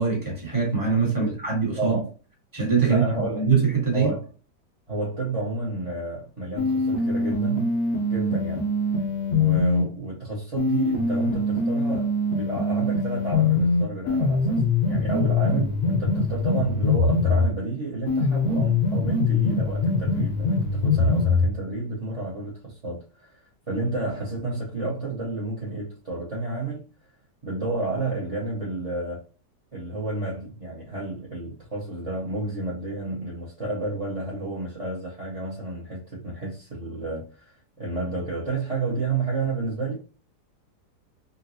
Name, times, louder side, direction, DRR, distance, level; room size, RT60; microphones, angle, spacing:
voice 1, 0.0-2.0 2.5-4.1, right 5 dB, 15° right, 1.0 m, -23 dB
voice 2, 1.8-2.1 2.8-3.5 3.9-4.3 4.9-7.7 8.1-8.7 9.3-23.4 23.7-26.8 27.4-29.2 29.7-37.5 37.8-39.9, right 2 dB, 30° right, 0.7 m, -31 dB
sound 1, 6.6-9.9 10.6-17.5 18.1-21.5, left 3 dB, 55° left, 0.7 m, -23 dB
3.9 x 2.2 x 2.6 m
omnidirectional pair, 1.8 m